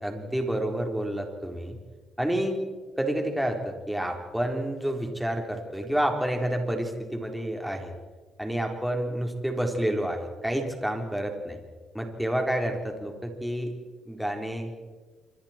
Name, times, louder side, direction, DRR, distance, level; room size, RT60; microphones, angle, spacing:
voice 1, 0.0-1.8 2.2-2.6 3.0-7.9 8.4-11.6 11.9-13.7 14.1-14.7, right 1 dB, 5° right, 2 dB, 4.1 m, -29 dB
27.5 x 24.5 x 4.5 m, 1.3 s
cardioid pair, 90°, 0 cm